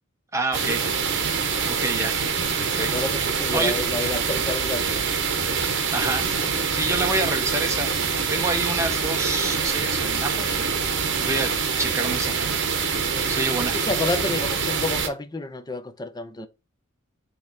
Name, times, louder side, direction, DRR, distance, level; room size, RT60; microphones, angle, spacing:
voice 1, 0.3-0.8 1.7-2.1 2.6-2.9 3.5-3.7 5.9-6.2 6.7-7.9 8.3-10.7 11.2-11.5 11.8-12.3 13.3-13.7, right 2 dB, 15° right, 1.2 m, -27 dB
sound 1, 0.5-15.1, right 5 dB, 60° right, 1.1 m, -25 dB
voice 2, 2.8-4.9 13.1-13.3 13.7-16.5, left 3 dB, 20° left, 0.6 m, -30 dB
8.5 x 3.0 x 4.1 m
head